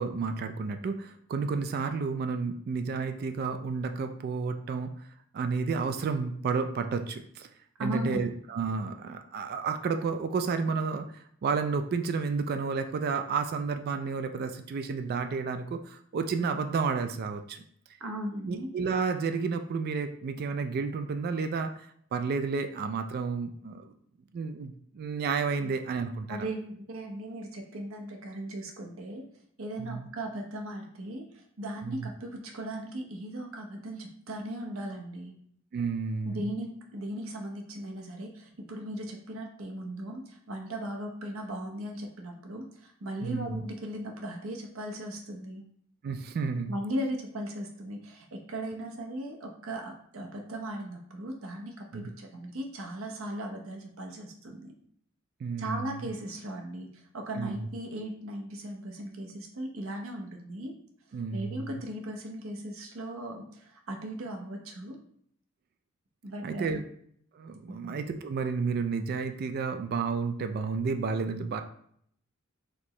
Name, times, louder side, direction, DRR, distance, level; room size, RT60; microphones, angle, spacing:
voice 1, 0.0-5.1 5.3-7.5 7.8-17.6 18.4-23.9 24.3-26.5 29.8-30.1 31.8-32.1 35.7-36.5 43.2-43.6 46.0-46.7 51.9-52.1 55.4-56.1 57.4-57.7 61.1-61.8 66.4-66.8 67.3-71.6, right 5 dB, 45° right, 7 dB, 0.3 m, -31 dB
voice 2, 7.8-8.4 18.0-18.7 26.3-29.2 29.6-31.3 31.6-35.4 36.3-45.7 46.7-54.7 55.6-60.7 61.3-65.0 66.2-66.7 67.7-67.9, right 1 dB, 75° right, 2 dB, 0.8 m, -37 dB
4.3 x 2.9 x 3.1 m, 0.65 s
head